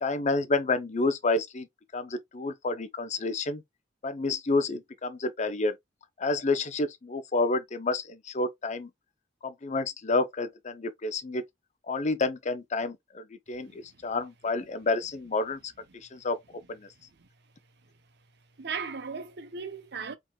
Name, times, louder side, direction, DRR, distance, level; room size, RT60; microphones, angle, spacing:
voice 1, 0.0-1.7 1.9-3.6 4.0-5.7 6.2-8.9 9.4-11.4 11.9-15.7 16.1-16.4 16.7-16.9, left 3 dB, 40° left, 0.6 m, -29 dB
voice 2, 18.6-20.2, right 5 dB, 65° right, 0.8 m, -37 dB
4.9 x 3.7 x 2.3 m
head